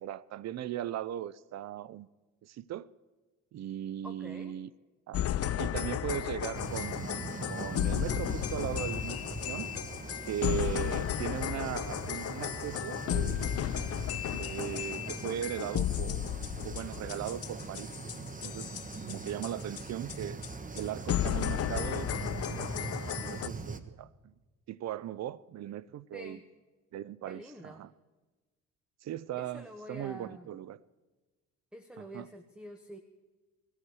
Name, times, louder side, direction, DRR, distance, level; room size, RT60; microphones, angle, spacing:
voice 1, 0.0-2.1 2.4-2.9 3.5-4.7 5.1-5.2 5.6-7.2 7.5-9.7 10.3-13.7 14.3-16.3 16.6-18.0 18.4-20.4 20.8-24.3 24.7-26.4 26.9-27.9 29.0-30.8 32.0-32.3, right 11 dB, 60° right, 0.6 m, -38 dB
voice 2, 4.0-4.5 26.1-26.4 27.3-27.8 29.4-30.5 31.7-33.0, equal, 5° right, 1.2 m, -47 dB
sound 1, 5.1-19.8 20.1-20.2 20.4-20.5 20.8-20.9 21.1-23.5, left 11 dB, 55° left, 0.6 m, -34 dB
sound 2, 6.5-23.8, right 3 dB, 25° right, 1.3 m, -41 dB
20.0 x 14.5 x 4.8 m
cardioid pair, 90°, 30 cm